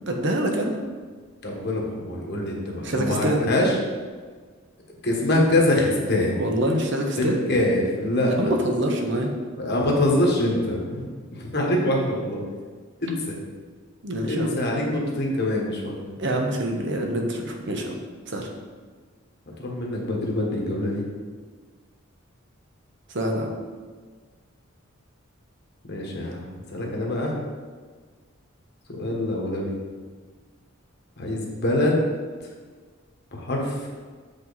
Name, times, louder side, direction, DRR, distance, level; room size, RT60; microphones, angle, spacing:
voice 1, 0.1-0.7 2.8-3.5 6.4-7.4 8.4-9.3 14.0-14.6 16.2-18.0 18.3-18.5 23.1-23.5, right 1 dB, 60° right, 2 dB, 1.0 m, -25 dB
voice 2, 1.4-3.8 5.0-6.4 7.2-8.5 9.6-12.4 13.0-13.4 14.3-16.0 19.6-21.0 25.9-27.3 28.9-29.8 31.2-32.0 32.4-32.5 33.3-33.9, left 1 dB, 50° left, -1 dB, 1.4 m, -24 dB
7.4 x 5.2 x 4.1 m, 1.5 s
head